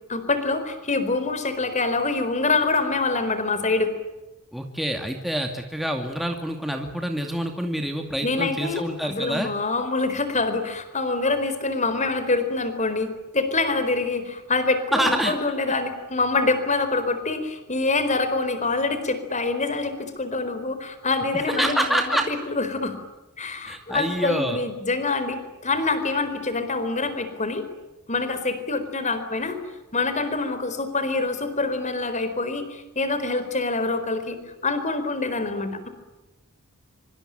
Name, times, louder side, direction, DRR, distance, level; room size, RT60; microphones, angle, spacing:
voice 1, 0.1-3.9 8.2-23.0 23.4-27.7 28.1-29.6 29.9-35.9, left 3 dB, 35° left, 10 dB, 4.3 m, -25 dB
voice 2, 4.5-9.5 14.9-15.4 21.3-22.3 23.6-24.6, equal, ahead, 3 dB, 2.4 m, -26 dB
26.0 x 25.5 x 9.0 m, 1.0 s
head